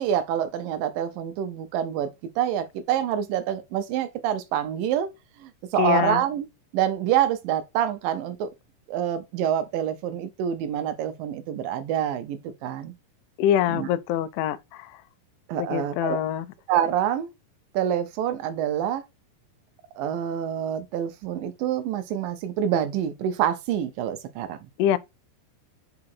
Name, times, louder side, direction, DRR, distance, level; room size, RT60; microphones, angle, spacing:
voice 1, 0.0-2.1 2.4-5.1 5.4-6.5 6.7-8.5 8.9-12.9 13.7-13.9 15.5-16.2 16.7-17.3 17.7-19.0 20.0-24.6, right 10 dB, 80° right, 2.3 m, -26 dB
voice 2, 5.8-6.2 13.4-15.0 15.6-16.5 24.8-25.0, left 11 dB, 80° left, 1.9 m, -24 dB
4.9 x 4.8 x 4.2 m
omnidirectional pair, 4.0 m